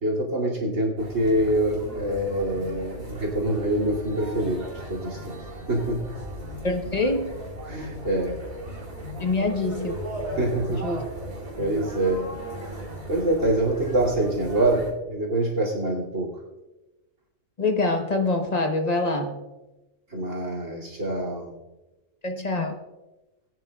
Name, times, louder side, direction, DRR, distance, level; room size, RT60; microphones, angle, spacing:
voice 1, 0.0-4.6 4.9-5.3 5.7-6.1 7.7-8.4 10.4-10.9 11.6-12.2 13.1-16.3 20.1-21.5, right 1 dB, 85° right, -1 dB, 3.0 m, -25 dB
sound 1, 1.0-14.9, right 1 dB, 30° right, 4.5 m, -37 dB
voice 2, 6.6-7.3 9.2-9.9 10.7-11.0 17.6-19.4 22.2-22.7, left 2 dB, 35° left, 4 dB, 1.1 m, -25 dB
21.5 x 9.1 x 2.3 m, 1.1 s
omnidirectional pair, 1.3 m